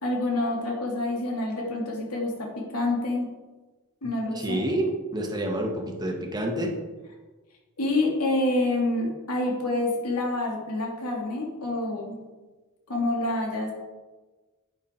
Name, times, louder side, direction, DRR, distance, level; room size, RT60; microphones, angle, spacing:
voice 1, 0.0-3.3 4.0-4.7 7.8-12.2 12.9-13.7, left 2 dB, 90° left, -1 dB, 2.6 m, -27 dB
voice 2, 4.4-6.7, right 1 dB, 20° right, 1 dB, 1.7 m, -28 dB
10.0 x 9.5 x 4.5 m, 1.2 s
head